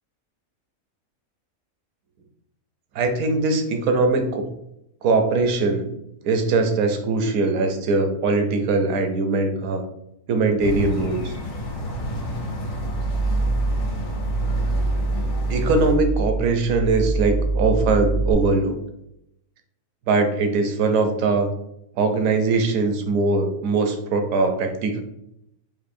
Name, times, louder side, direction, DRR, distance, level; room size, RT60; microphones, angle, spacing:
voice 1, 2.9-4.4 5.0-5.9 6.2-9.8 10.3-11.4 15.5-18.8 20.1-21.5 22.0-25.0, right 3 dB, 70° right, 6 dB, 0.9 m, -21 dB
sound 1, 10.6-15.9, equal, 85° left, 1.3 m, -31 dB
sound 2, 12.7-18.3, right 2 dB, 65° left, 0.6 m, -24 dB
4.3 x 2.6 x 2.5 m, 0.80 s
omnidirectional pair, 1.6 m